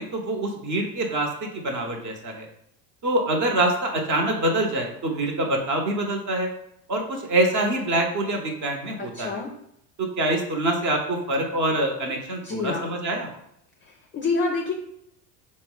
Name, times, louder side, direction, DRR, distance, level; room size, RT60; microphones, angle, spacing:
voice 1, 0.0-2.5 3.0-6.5 6.9-9.3 10.0-13.3, right 1 dB, 40° right, 3 dB, 0.9 m, -25 dB
voice 2, 9.0-9.5 12.4-12.9 13.8-14.7, left 4 dB, 25° left, 2 dB, 0.4 m, -28 dB
4.0 x 2.1 x 3.8 m, 0.76 s
hypercardioid pair, 80°, 48 cm